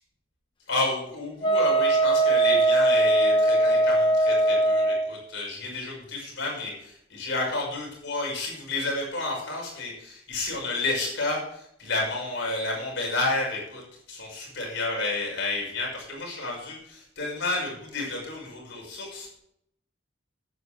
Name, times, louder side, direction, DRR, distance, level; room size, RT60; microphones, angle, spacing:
voice 1, 0.7-13.8 14.1-19.4, left 2 dB, 60° left, -3 dB, 5.8 m, -31 dB
Wind instrument woodwind instrument, 1.4-5.1, right 2 dB, 25° left, 1.3 m, -21 dB
10.5 x 9.1 x 4.9 m, 0.72 s
head